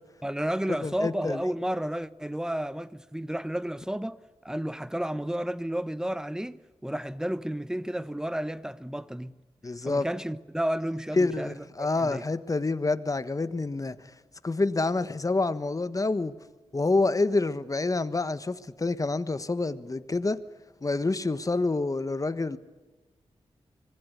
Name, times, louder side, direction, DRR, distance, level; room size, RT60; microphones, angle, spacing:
voice 1, 0.2-9.4 9.8-12.2, right 1 dB, 5° right, 1.0 m, -32 dB
voice 2, 0.8-1.4 9.6-10.1 11.2-14.1 14.4-16.3 16.7-20.4 20.8-22.6, left 3 dB, 30° left, 1.4 m, -27 dB
25.0 x 20.0 x 8.4 m
wide cardioid pair, 80°, 11 cm